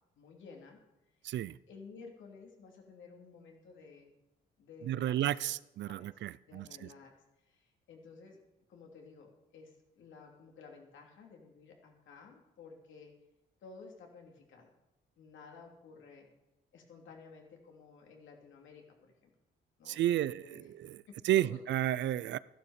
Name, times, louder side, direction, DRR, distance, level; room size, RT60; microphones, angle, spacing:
voice 1, 0.1-0.8 1.7-4.1 4.6-5.6 5.9-6.2 6.5-7.1 7.4-8.4 8.7-13.1 13.6-14.7 15.2-16.3 16.7-19.3 19.8-20.7 21.1-21.6, left 4 dB, 75° left, 1 dB, 2.7 m, -54 dB
voice 2, 1.2-1.6 4.9-6.7 19.9-21.0 21.2-22.4, right 13 dB, 65° right, 20 dB, 0.4 m, -32 dB
13.0 x 11.0 x 4.9 m, 0.93 s
cardioid pair, 90°, 20 cm